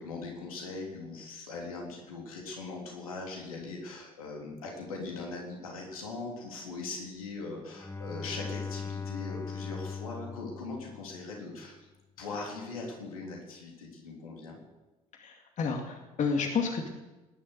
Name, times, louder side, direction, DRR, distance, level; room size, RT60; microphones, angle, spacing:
voice 1, 0.0-11.9 12.2-14.6, left 3 dB, 80° left, 0 dB, 3.6 m, -40 dB
Bowed string instrument, 7.7-11.5, left 5 dB, 15° left, 1.2 m, -39 dB
voice 2, 15.2-16.9, left 5 dB, 45° left, 3 dB, 2.4 m, -30 dB
19.0 x 11.0 x 6.6 m, 1.1 s
figure-of-eight pair, 50°, 18 cm